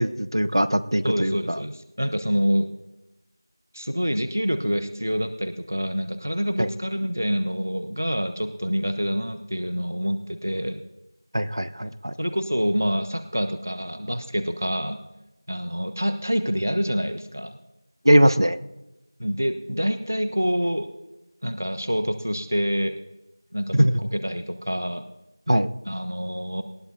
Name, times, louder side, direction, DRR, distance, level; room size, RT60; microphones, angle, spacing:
voice 1, 0.0-1.6 6.6-6.7 11.3-12.1 18.0-18.6 23.7-24.0 25.5-25.7, equal, 75° right, 15 dB, 0.7 m, -20 dB
voice 2, 1.0-2.7 3.7-10.8 12.2-15.0 15.5-17.6 19.2-20.9 21.4-22.9 23.5-25.0 25.9-26.6, equal, 40° right, 10 dB, 0.6 m, -26 dB
19.0 x 13.5 x 2.7 m, 0.95 s
figure-of-eight pair, 180°, 2 cm